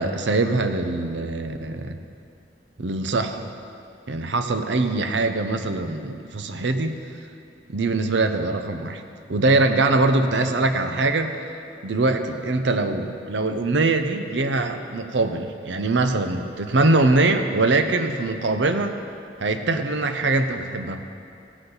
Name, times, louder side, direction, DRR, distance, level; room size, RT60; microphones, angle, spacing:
voice 1, 0.0-2.0 2.8-3.4 4.1-6.9 7.7-9.0 9.3-11.3 11.8-19.0 19.4-21.0, right 2 dB, 70° right, 7 dB, 0.7 m, -22 dB
15.0 x 8.0 x 4.0 m, 2.6 s
head